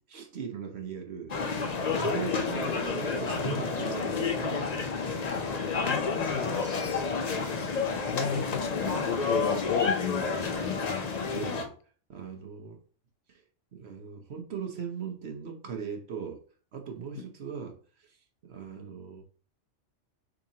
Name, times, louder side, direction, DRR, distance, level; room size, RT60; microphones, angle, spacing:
voice 1, 0.1-1.7 1.9-4.7 11.3-11.7 12.1-12.8 13.3-13.4 13.7-16.4 16.7-18.2 18.4-19.2, right 6 dB, 60° right, 1.1 m, -39 dB
sound 1, 1.3-11.6, left 4 dB, 45° left, 0.6 m, -30 dB
voice 2, 5.7-6.6 7.8-11.2, left 7 dB, 75° left, 1.0 m, -34 dB
6.6 x 2.9 x 2.8 m
omnidirectional pair, 1.3 m